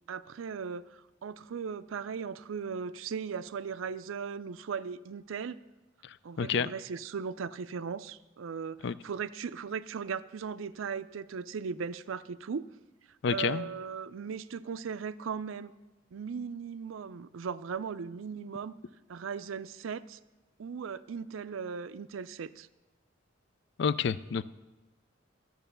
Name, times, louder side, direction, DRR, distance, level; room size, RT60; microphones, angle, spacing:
voice 1, 0.1-5.6 6.2-12.7 13.3-15.7 16.1-18.7 19.1-20.2 20.6-22.7, right 6 dB, 85° right, 14 dB, 0.4 m, -38 dB
voice 2, 6.0-6.7 8.8-8.9 13.2-13.6 23.8-24.4, left 6 dB, 60° left, 17 dB, 0.4 m, -29 dB
12.5 x 7.6 x 6.8 m, 1.1 s
head